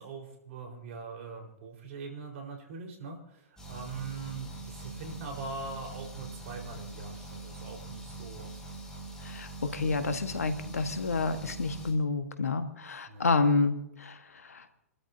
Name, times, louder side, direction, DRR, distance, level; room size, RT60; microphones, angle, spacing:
voice 1, 0.0-8.5 13.1-13.3, right 4 dB, 60° right, 2 dB, 4.6 m, -42 dB
sound 1, 3.6-11.9, right 2 dB, 10° left, 5.6 m, -43 dB
voice 2, 9.2-14.6, left 3 dB, 80° left, 8 dB, 1.5 m, -29 dB
29.0 x 13.0 x 2.8 m, 0.79 s
hypercardioid pair, 110°, 8 cm